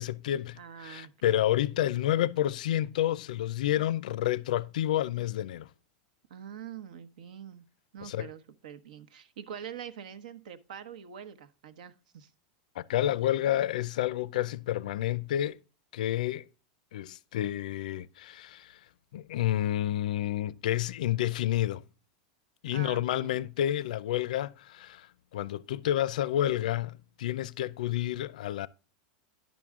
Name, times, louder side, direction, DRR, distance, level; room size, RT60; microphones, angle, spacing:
voice 1, 0.0-5.7 8.0-8.3 12.8-15.6 15.9-16.5 16.9-18.8 19.1-21.8 22.6-28.7, left 12 dB, 90° left, 0.5 m, -29 dB
voice 2, 0.5-1.4 6.3-7.6 7.9-12.3 22.7-23.4, right 8 dB, 90° right, 1.0 m, -44 dB
10.5 x 6.2 x 3.6 m
supercardioid pair, 165°, 4 cm